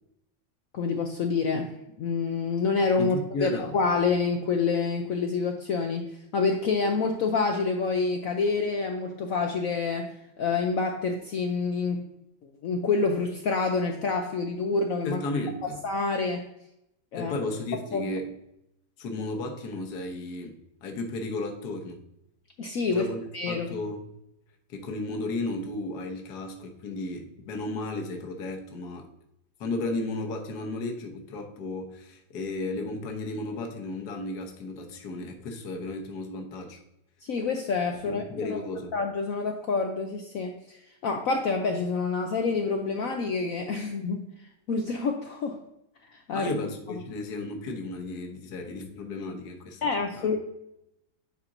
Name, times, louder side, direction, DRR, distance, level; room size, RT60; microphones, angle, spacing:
voice 1, 0.7-1.7 2.0-6.1 6.3-12.0 12.6-15.2 15.8-16.4 17.1-17.3 17.9-18.1 22.6-23.1 23.3-23.7 37.2-38.2 38.5-38.6 38.9-44.3 44.7-45.6 46.1-46.5 49.8-50.4, left 4 dB, 75° left, 4 dB, 0.8 m, -27 dB
voice 2, 3.0-3.8 15.0-15.8 17.1-18.4 19.0-20.6 20.8-22.0 22.9-23.2 23.5-24.0 24.7-29.1 29.6-36.8 38.0-38.9 46.3-49.8 50.1-50.3, left 2 dB, 60° left, 3 dB, 1.5 m, -34 dB
9.9 x 4.4 x 2.6 m, 0.82 s
omnidirectional pair, 2.1 m